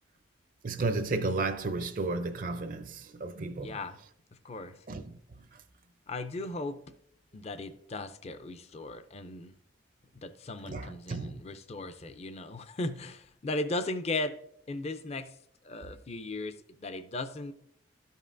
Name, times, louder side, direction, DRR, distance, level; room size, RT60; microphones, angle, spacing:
voice 1, 0.6-3.8 4.9-5.4 10.7-11.4, right 3 dB, 45° right, 0.5 m, -33 dB
voice 2, 3.6-4.0 4.4-4.8 6.1-6.8 7.3-9.5 10.1-14.3 14.7-15.3 15.6-17.5, left 2 dB, 35° left, 0.4 m, -37 dB
12.5 x 5.4 x 2.5 m
head